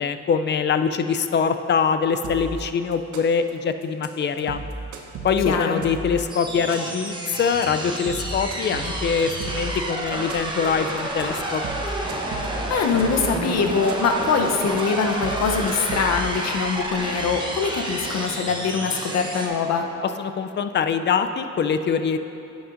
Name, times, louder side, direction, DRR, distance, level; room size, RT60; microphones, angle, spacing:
voice 1, 0.0-4.6 5.2-11.6 20.2-22.2, left 6 dB, 40° left, 9 dB, 0.4 m, -23 dB
sound 1, 2.2-2.6 2.9-3.5 3.8-4.1 4.4-6.2 6.5-7.1 7.4-7.6 8.0-9.8 10.1-10.7 11.0-11.2 11.5-13.3 13.7-14.2 14.6-14.8 15.1-16.4, right 4 dB, 75° right, 0.8 m, -34 dB
voice 2, 5.5-5.8 12.7-19.9, left 5 dB, 60° left, 4 dB, 0.8 m, -23 dB
sound 2, 6.3-19.5, right 1 dB, 15° right, 0.9 m, -30 dB
10.0 x 7.1 x 2.5 m, 2.9 s
cardioid pair, 90°, 30 cm